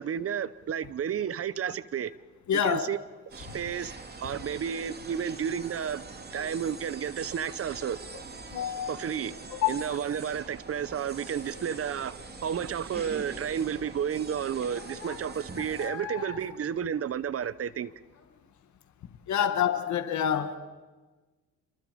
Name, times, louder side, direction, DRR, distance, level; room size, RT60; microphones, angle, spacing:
voice 1, 0.0-2.1 2.5-3.0 3.3-3.9 4.2-6.0 6.3-8.0 8.9-9.4 9.7-17.9 19.4-19.5, right 8 dB, 50° right, 0.9 m, -32 dB
voice 2, 2.5-2.9 8.5-8.9 9.6-9.8 19.3-20.6, left 9 dB, 70° left, 1.8 m, -27 dB
sound 1, 3.3-15.9, right 4 dB, 35° right, 2.7 m, -44 dB
Child speech kid speaking, 5.8-17.8 18.1-18.6 19.1-19.2, left 6 dB, 50° left, 4.6 m, -48 dB
28.5 x 24.0 x 5.3 m
cardioid pair, 90°, 30 cm